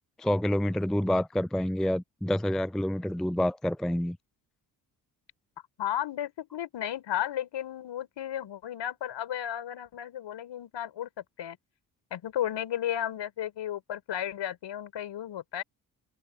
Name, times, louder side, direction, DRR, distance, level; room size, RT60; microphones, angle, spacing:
voice 1, 0.2-4.2, left 1 dB, ahead, 0.5 m, -28 dB
voice 2, 5.8-11.6 12.1-15.6, left 11 dB, 60° left, 4.7 m, -34 dB
open air
hypercardioid pair, 45°, 49 cm